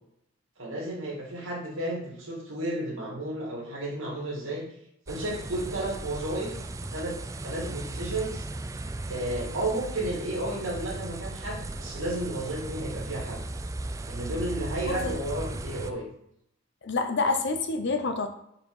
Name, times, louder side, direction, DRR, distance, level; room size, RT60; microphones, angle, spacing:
voice 1, 0.6-4.7 5.1-6.6 6.9-7.2 7.4-8.5 9.1-13.4 14.1-16.1, right 1 dB, 80° right, -2 dB, 2.1 m, -32 dB
sound 1, 5.1-15.9, right 2 dB, 15° right, 0.3 m, -36 dB
voice 2, 14.9-15.2 16.8-18.3, left 3 dB, 60° left, 6 dB, 0.7 m, -28 dB
4.6 x 4.6 x 4.8 m, 0.75 s
head